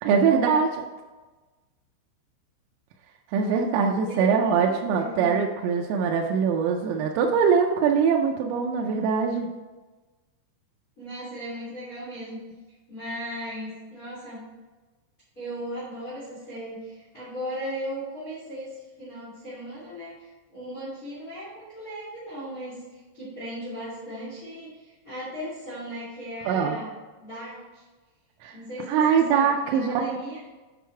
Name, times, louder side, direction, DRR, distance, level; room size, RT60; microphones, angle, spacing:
voice 1, 0.0-0.8 3.3-9.5 26.5-26.8 28.4-28.6 28.9-30.0, right 6 dB, 85° right, 1 dB, 3.3 m, -22 dB
voice 2, 4.0-5.3 11.0-12.4 12.9-14.4 15.3-27.8 28.5-30.4, equal, 30° left, -8 dB, 1.6 m, -37 dB
9.4 x 4.6 x 4.5 m, 1.2 s
omnidirectional pair, 5.9 m